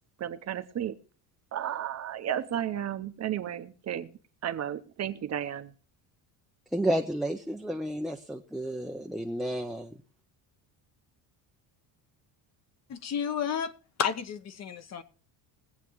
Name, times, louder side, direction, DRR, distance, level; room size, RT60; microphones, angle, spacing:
voice 1, 0.2-1.0 1.5-5.7, right 10 dB, 35° right, 0.8 m, -33 dB
voice 2, 6.7-10.0, right 1 dB, ahead, 0.5 m, -31 dB
voice 3, 12.9-13.7 14.0-15.0, left 7 dB, 35° left, 0.9 m, -31 dB
21.0 x 8.2 x 3.0 m
cardioid pair, 160°, 43 cm